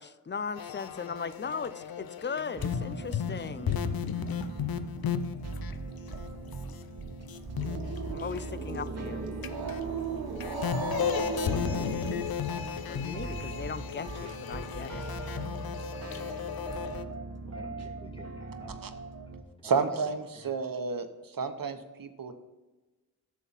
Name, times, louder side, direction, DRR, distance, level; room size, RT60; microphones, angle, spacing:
voice 1, 0.0-3.7 8.1-9.2 12.9-15.0, left 5 dB, 30° left, 15 dB, 0.6 m, -38 dB
sound 1, 0.6-6.8 7.2-9.1 9.4-17.0, left 7 dB, 75° left, 0.7 m, -34 dB
sound 2, 2.5-19.4, right 3 dB, 45° right, 1.1 m, -41 dB
Growling, 7.3-12.7, right 5 dB, 90° right, 1.3 m, -37 dB
voice 2, 10.9-11.9 17.5-18.8 19.2-19.3 19.6-19.8 20.3-20.5, equal, 15° left, 0 dB, 2.8 m, -46 dB
voice 3, 19.6-22.3, right 5 dB, 65° right, 8 dB, 1.1 m, -31 dB
11.0 x 7.3 x 4.1 m, 1.1 s
cardioid pair, 45°, 37 cm